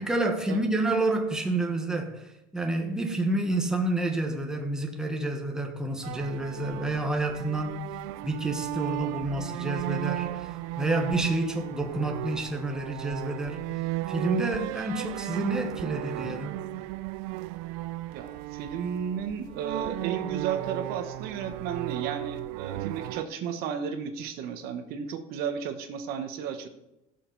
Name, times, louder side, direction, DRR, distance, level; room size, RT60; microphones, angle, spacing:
voice 1, 0.0-7.8 8.2-13.6 14.1-16.6, right 2 dB, 5° right, 1.3 m, -29 dB
sound 1, 6.0-23.2, right 16 dB, 85° right, 0.5 m, -35 dB
voice 2, 18.1-26.7, right 7 dB, 60° right, 1.2 m, -33 dB
16.5 x 6.6 x 4.0 m
cardioid pair, 145°, 18 cm